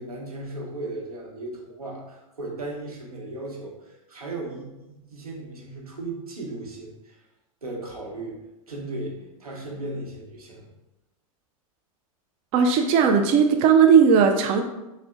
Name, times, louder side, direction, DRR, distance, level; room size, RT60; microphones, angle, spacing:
voice 1, 0.0-7.2 7.6-8.4 8.7-10.7, right 2 dB, 90° right, -1 dB, 0.9 m, -36 dB
voice 2, 12.5-14.6, right 6 dB, 35° right, 5 dB, 0.3 m, -17 dB
3.6 x 2.1 x 3.6 m, 0.99 s
hypercardioid pair, 100°, 18 cm